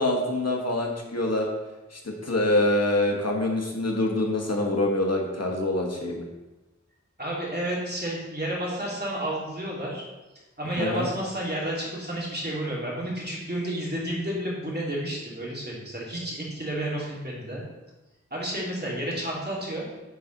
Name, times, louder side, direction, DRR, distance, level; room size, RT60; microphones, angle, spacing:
voice 1, 0.0-1.5 1.9-6.2 10.8-11.0, left 1 dB, 60° left, 0 dB, 1.4 m, -25 dB
voice 2, 7.2-10.0 10.6-17.6 18.3-19.9, right 1 dB, 35° right, -5 dB, 2.7 m, -31 dB
10.5 x 4.2 x 4.0 m, 1.1 s
wide cardioid pair, 40°, 29 cm